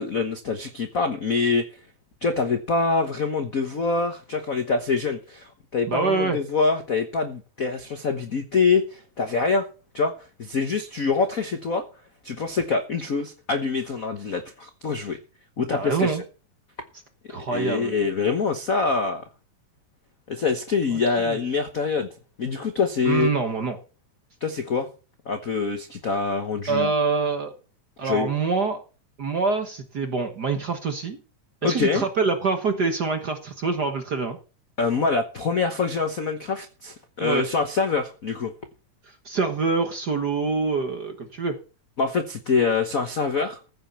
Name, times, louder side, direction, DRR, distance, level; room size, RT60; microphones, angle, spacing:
voice 1, 0.0-1.7 2.2-9.7 9.9-10.1 10.4-11.8 12.2-15.2 15.6-16.2 17.5-19.2 20.3-22.1 22.4-23.3 24.4-24.9 25.3-26.9 28.0-28.3 31.6-32.0 34.8-38.5 42.0-43.6, left 4 dB, 65° left, 7 dB, 0.8 m, -25 dB
voice 2, 5.9-6.4 15.7-16.2 17.3-17.9 20.9-21.4 23.0-23.8 26.7-27.5 28.0-28.8 29.2-31.2 31.6-34.4 37.2-37.4 39.2-41.6, right 4 dB, 50° right, 6 dB, 1.3 m, -25 dB
15.0 x 6.7 x 6.8 m, 0.36 s
omnidirectional pair, 3.3 m